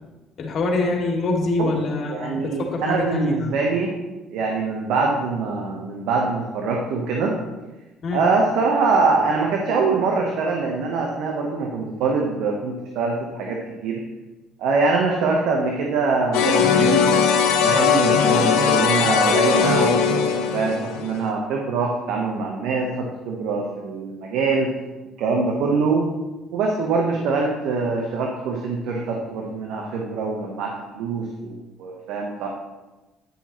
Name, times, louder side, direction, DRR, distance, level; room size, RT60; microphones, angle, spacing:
voice 1, 0.4-3.5 8.0-8.2, left 2 dB, 55° left, 0 dB, 2.5 m, -25 dB
voice 2, 2.1-3.9 4.3-7.4 8.1-14.0 14.6-17.0 17.6-24.7 25.2-26.0 26.5-32.5, right 4 dB, 70° right, 0 dB, 1.2 m, -23 dB
sound 1, 16.3-21.2, left 6 dB, 80° left, 1.0 m, -19 dB
10.5 x 9.9 x 3.1 m, 1.1 s
supercardioid pair, 65°, 0 cm